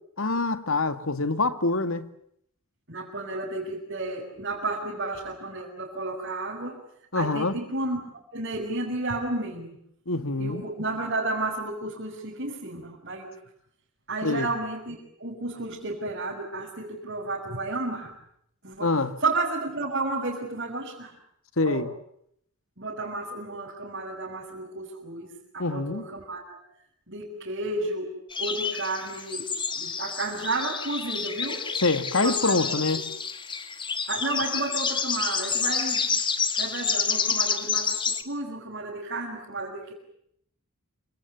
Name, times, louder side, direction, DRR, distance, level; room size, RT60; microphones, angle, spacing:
voice 1, 0.2-2.1 7.1-7.6 10.1-10.6 14.2-14.5 18.8-19.1 21.6-21.9 25.6-26.1 31.8-33.1, left 3 dB, 70° left, 2.1 m, -25 dB
voice 2, 2.9-6.8 7.1-8.0 8.3-9.8 10.4-13.3 14.1-18.1 18.6-18.9 19.2-21.1 21.6-21.8 22.8-26.6 27.1-28.1 28.4-29.4 29.8-31.6 32.1-32.8 34.1-36.2 36.6-39.9, right 2 dB, 50° right, 6.5 m, -32 dB
sound 1, 28.3-38.2, left 6 dB, 20° left, 1.8 m, -29 dB
28.5 x 26.5 x 7.1 m
head